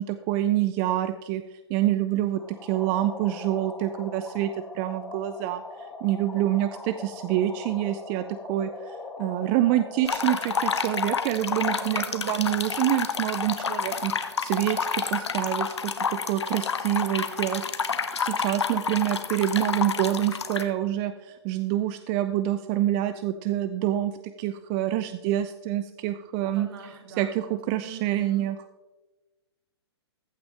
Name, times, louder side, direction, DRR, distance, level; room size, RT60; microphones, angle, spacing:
voice 1, 0.0-1.4 1.7-14.1 14.4-26.7 27.2-28.6, right 13 dB, 30° right, 11 dB, 0.4 m, -27 dB
sound 1, 2.4-12.3, left 3 dB, 5° left, 1.8 m, -41 dB
sound 2, 10.0-20.6, left 6 dB, 85° left, 0.9 m, -29 dB
voice 2, 11.7-12.8 26.5-27.5 27.8-28.5, right 6 dB, 60° right, 3 dB, 2.4 m, -44 dB
14.5 x 6.1 x 3.3 m, 1.2 s
hypercardioid pair, 125°, 14 cm